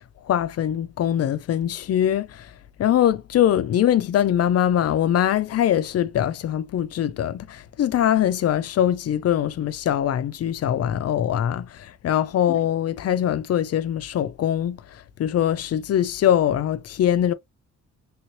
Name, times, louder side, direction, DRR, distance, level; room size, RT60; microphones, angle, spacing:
voice 1, 0.3-2.5 2.8-17.3, left 10 dB, 55° left, 0.4 m, -22 dB
3.3 x 3.1 x 2.7 m
wide cardioid pair, 165°, 30 cm